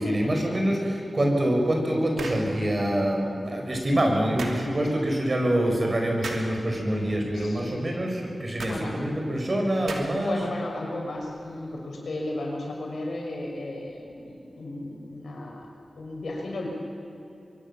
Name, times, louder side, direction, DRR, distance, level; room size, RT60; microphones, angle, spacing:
voice 1, 0.0-10.4, right 1 dB, 45° right, 1 dB, 6.5 m, -25 dB
sound 1, 2.2-2.5 4.4-4.6 6.2-6.5 8.6-8.8 9.9-10.3, right 3 dB, 90° right, 2.8 m, -35 dB
voice 2, 7.3-7.7 8.6-8.9 10.1-15.7 16.0-16.7, left 2 dB, 80° left, -1 dB, 6.0 m, -34 dB
24.0 x 23.5 x 7.4 m, 2.7 s
cardioid pair, 45°, 0 cm